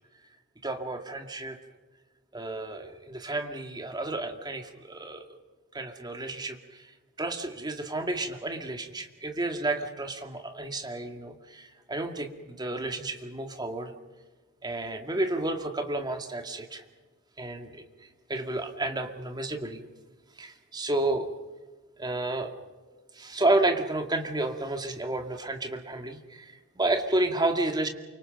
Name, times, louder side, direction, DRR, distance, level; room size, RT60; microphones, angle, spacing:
voice 1, 0.6-1.6 2.3-5.2 5.7-6.9 7.2-13.9 14.6-16.8 17.4-17.8 18.3-19.8 20.4-21.3 22.0-22.5 23.1-27.9, right 2 dB, 20° right, 5 dB, 2.2 m, -31 dB
28.5 x 25.0 x 5.3 m, 1.3 s
head